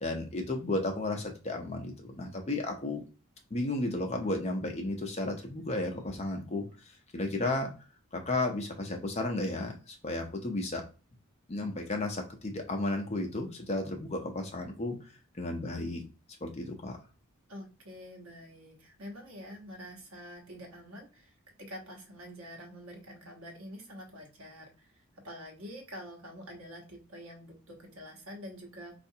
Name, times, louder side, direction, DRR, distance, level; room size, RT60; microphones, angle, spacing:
voice 1, 0.0-3.0 3.5-6.7 7.1-7.7 8.1-10.8 11.5-15.0 15.3-16.0 16.4-17.0, left 2 dB, 30° left, 3 dB, 0.5 m, -33 dB
voice 2, 17.5-21.3 21.6-24.7 25.2-28.9, equal, 75° right, 1 dB, 1.1 m, -46 dB
4.4 x 2.4 x 2.7 m, 0.34 s
head